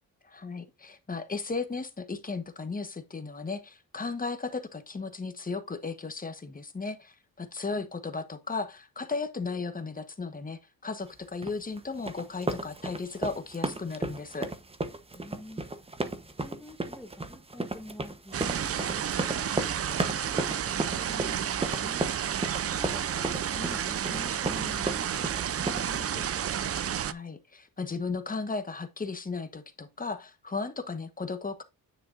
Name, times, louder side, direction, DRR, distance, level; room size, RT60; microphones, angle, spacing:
voice 1, 0.2-14.5 27.0-31.6, left 4 dB, 25° left, 1.2 m, -35 dB
sound 1, 11.4-26.0, right 2 dB, 15° right, 1.0 m, -34 dB
voice 2, 15.1-15.6 16.1-22.0 22.7-26.5, left 1 dB, 5° left, 2.1 m, -46 dB
sound 2, 18.3-27.1, right 9 dB, 40° right, 0.5 m, -31 dB
9.9 x 5.8 x 2.5 m
cardioid pair, 110°, 37 cm